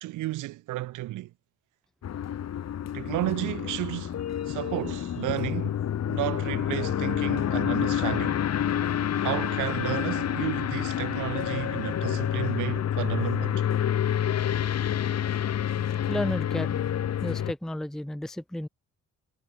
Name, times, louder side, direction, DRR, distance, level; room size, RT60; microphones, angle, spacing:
voice 1, 0.0-1.3 2.9-4.2 4.5-5.8 6.1-8.4 9.2-13.6, right 17 dB, 85° right, 0.9 m, -32 dB
sound 1, 2.0-17.5, left 10 dB, 60° left, 1.9 m, -28 dB
voice 2, 16.1-16.9 17.2-18.7, left 1 dB, ahead, 0.6 m, -32 dB
cardioid pair, 90°, 30 cm